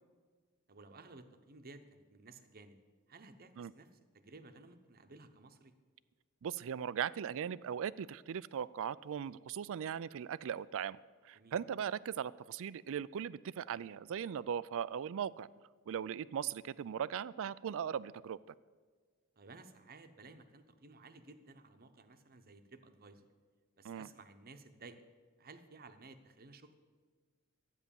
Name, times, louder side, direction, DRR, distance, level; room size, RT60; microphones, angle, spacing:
voice 1, 0.7-2.8 3.1-5.7 11.3-11.6 19.4-23.3 23.8-25.0 25.4-26.7, right 3 dB, 45° right, 9 dB, 0.9 m, -56 dB
voice 2, 6.4-11.0 11.2-15.5 15.9-18.5 23.8-24.1, right 8 dB, 65° right, 19 dB, 0.4 m, -39 dB
12.5 x 9.3 x 7.1 m, 1.5 s
head